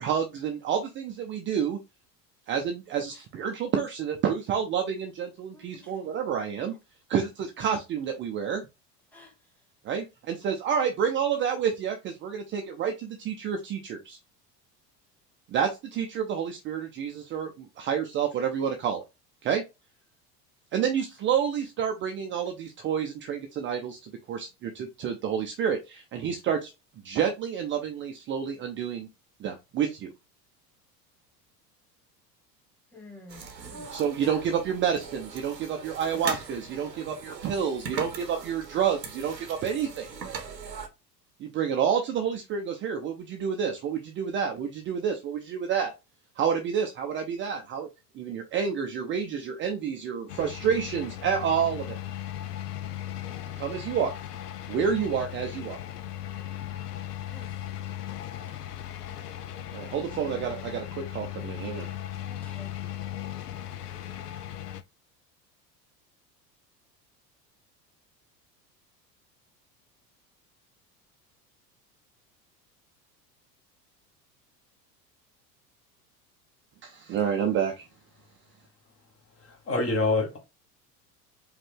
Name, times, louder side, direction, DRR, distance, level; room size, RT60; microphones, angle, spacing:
voice 1, 0.0-1.8 2.5-6.7 7.1-8.6 9.8-14.2 15.5-19.0 19.4-19.6 20.7-26.7 27.0-29.1 29.4-30.1 33.9-40.1 41.4-45.9 46.4-47.9 48.1-52.0 53.5-54.1 54.7-55.8 59.7-61.9 76.8-77.9, right 7 dB, 25° right, 0.6 m, -29 dB
voice 2, 5.5-5.9 9.1-9.3 9.9-10.0 32.9-33.9 57.3-57.7 62.2-62.7, left 2 dB, 5° left, 1.8 m, -51 dB
sound 1, 33.3-40.9, right 5 dB, 80° right, 0.9 m, -40 dB
sound 2, 50.3-64.8, left 12 dB, 70° left, 0.6 m, -37 dB
voice 3, 79.4-80.4, left 3 dB, 25° left, 1.6 m, -26 dB
5.0 x 2.5 x 3.5 m
figure-of-eight pair, 75°, 49 cm